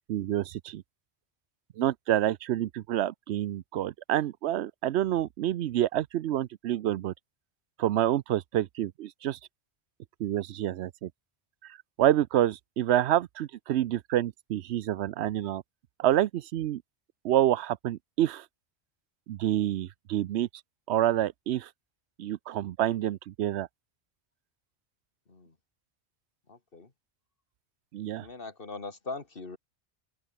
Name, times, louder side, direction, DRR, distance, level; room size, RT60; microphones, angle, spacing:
voice 1, 0.1-0.8 1.8-7.1 7.8-9.4 10.2-11.1 11.6-15.6 16.0-16.8 17.2-18.5 19.3-20.5 20.9-21.7 22.2-23.7 27.9-28.3, right 12 dB, 85° right, 0.9 m, -28 dB
voice 2, 26.5-26.9 28.2-29.6, left 3 dB, 60° left, 2.5 m, -41 dB
open air
omnidirectional pair, 1.1 m